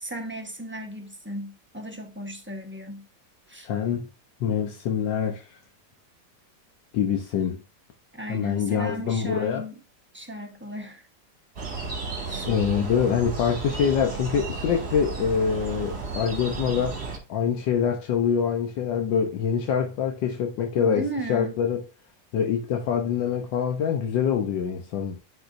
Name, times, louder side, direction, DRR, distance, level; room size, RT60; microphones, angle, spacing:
voice 1, 0.0-3.1 3.5-3.7 8.1-9.8 10.1-11.0 12.2-12.5 20.8-21.6, right 1 dB, 10° right, 0.7 m, -35 dB
voice 2, 3.6-4.1 4.4-5.5 6.9-7.6 8.3-9.6 12.4-17.0 17.3-21.8 22.3-25.2, left 7 dB, 85° left, 1.6 m, -25 dB
sound 1, 11.6-17.2, right 4 dB, 35° right, 1.7 m, -33 dB
10.0 x 4.9 x 2.6 m
omnidirectional pair, 2.0 m